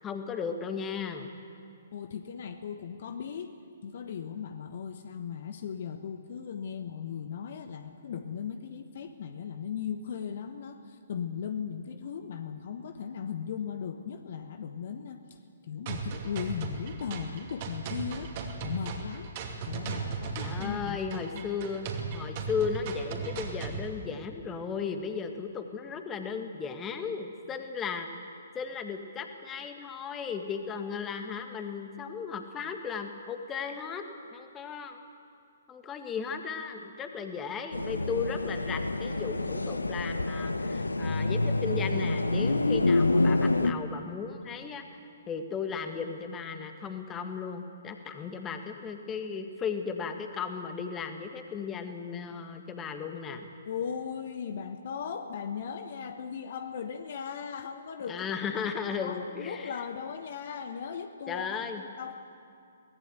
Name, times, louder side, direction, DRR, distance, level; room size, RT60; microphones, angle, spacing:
voice 1, 0.0-1.3 20.3-28.1 28.5-34.0 34.3-35.0 35.7-45.0 45.3-53.5 58.1-59.8 61.3-61.8, left 6 dB, 15° left, 6 dB, 1.7 m, -36 dB
voice 2, 1.9-3.5 3.8-10.8 11.1-15.2 15.7-18.3 18.6-19.3 19.7-21.4 53.7-58.3 59.0-62.1, left 7 dB, 50° left, 8 dB, 1.2 m, -37 dB
sound 1, 15.9-23.9, right 4 dB, 35° right, 2.6 m, -37 dB
sound 2, 37.7-43.7, left 2 dB, 75° left, 1.0 m, -27 dB
23.0 x 18.5 x 8.2 m, 2.4 s
figure-of-eight pair, 125°, 0 cm